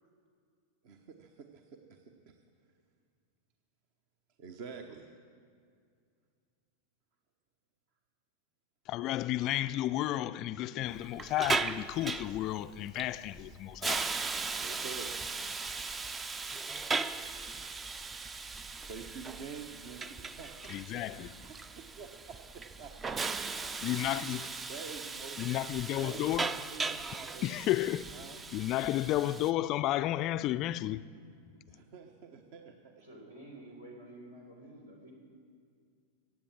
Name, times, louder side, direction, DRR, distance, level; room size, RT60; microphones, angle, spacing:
voice 1, 0.8-2.4 4.4-5.1 14.5-15.2 16.5-16.6 18.8-23.9 24.7-25.4 26.0-27.6 28.1-28.4 31.7-33.0, right 5 dB, 45° right, 1.0 m, -48 dB
voice 2, 8.9-14.1 20.7-21.3 23.8-24.5 25.4-26.5 27.4-28.0 28.5-31.1, left 14 dB, 35° left, 0.4 m, -32 dB
Hiss, 10.9-29.5, right 4 dB, 15° right, 0.5 m, -38 dB
voice 3, 33.0-35.1, right 1 dB, 80° right, 3.9 m, -50 dB
16.0 x 9.5 x 7.4 m
figure-of-eight pair, 90°, 0 cm